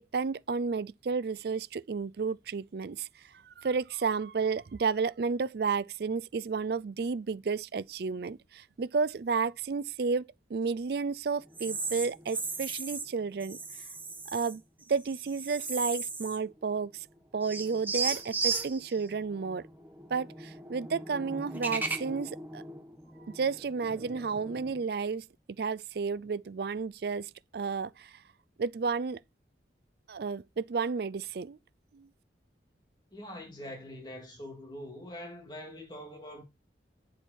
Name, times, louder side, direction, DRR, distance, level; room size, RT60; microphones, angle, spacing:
voice 1, 0.0-3.1 3.4-13.6 14.3-14.6 14.9-17.1 17.3-19.6 20.1-22.6 23.3-25.2 25.6-28.1 28.6-29.2 30.1-31.6 31.9-32.1, right 5 dB, 60° right, 0.4 m, -32 dB
sound 1, 11.5-13.1 13.4-14.5 14.9-16.5 16.8-16.9 17.4-24.8, right 4 dB, 10° right, 1.5 m, -37 dB
voice 2, 33.1-36.4, left 1 dB, 25° left, 2.9 m, -44 dB
10.0 x 7.1 x 4.6 m
head